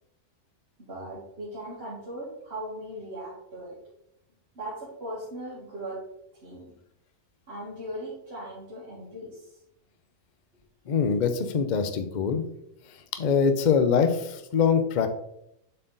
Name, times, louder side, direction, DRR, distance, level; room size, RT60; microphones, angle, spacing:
voice 1, 0.8-3.7 4.6-6.0 6.4-6.7 7.5-9.6, right 1 dB, 45° right, -8 dB, 2.1 m, -38 dB
voice 2, 10.9-12.4 12.9-15.1, left 6 dB, 45° left, 8 dB, 0.6 m, -24 dB
7.4 x 4.4 x 3.9 m, 0.78 s
omnidirectional pair, 1.5 m